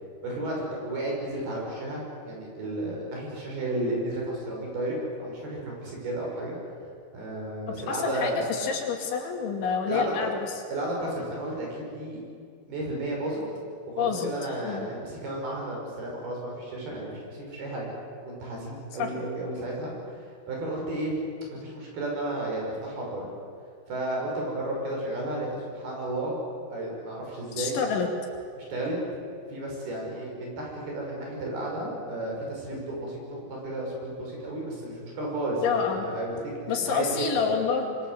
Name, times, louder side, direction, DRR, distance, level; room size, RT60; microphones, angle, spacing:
voice 1, 0.2-0.6 0.8-6.6 7.1-8.4 9.9-10.1 10.7-12.2 12.7-13.4 13.9-17.9 18.2-21.2 21.5-23.3 23.9-26.4 26.7-27.8 28.6-29.0 29.5-36.4 36.7-37.5, right 1 dB, 50° right, -1 dB, 8.0 m, -33 dB
voice 2, 7.9-10.5 14.0-14.3 14.6-14.9 19.0-19.1 27.6-28.1 35.6-36.1 36.7-38.0, left 6 dB, 70° left, 2 dB, 4.8 m, -28 dB
25.5 x 25.0 x 7.9 m, 2.3 s
omnidirectional pair, 5.6 m